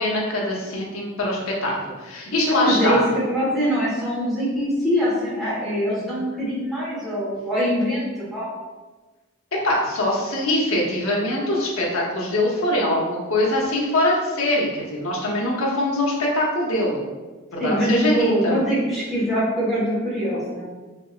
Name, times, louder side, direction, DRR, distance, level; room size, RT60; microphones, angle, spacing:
voice 1, 0.0-3.0 9.6-17.0 17.5-18.6, left 1 dB, 75° left, -3 dB, 0.8 m, -23 dB
voice 2, 2.5-3.0 3.3-8.5 17.6-20.6, equal, ahead, -11 dB, 1.3 m, -23 dB
3.4 x 2.8 x 2.4 m, 1.2 s
head